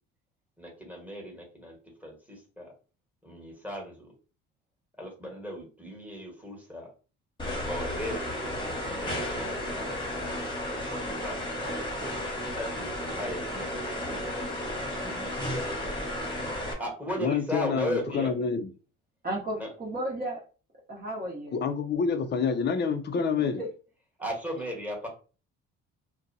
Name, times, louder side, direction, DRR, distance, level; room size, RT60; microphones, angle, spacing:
voice 1, 0.6-2.7 3.2-4.1 5.0-6.9 7.6-8.4 8.8-9.9 10.7-11.4 12.6-14.5 15.0-15.9 16.8-18.5 19.5-19.7 24.2-25.1, equal, 5° right, 0 dB, 1.2 m, -37 dB
sound 1, 7.4-16.7, left 1 dB, 15° left, 1.1 m, -33 dB
voice 2, 17.2-18.7 21.5-23.6, left 5 dB, 35° left, 9 dB, 0.5 m, -27 dB
voice 3, 19.2-20.4 20.9-21.5 23.6-23.7, right 1 dB, 30° right, -3 dB, 0.9 m, -33 dB
2.6 x 2.2 x 2.6 m, 0.35 s
supercardioid pair, 70°, 32 cm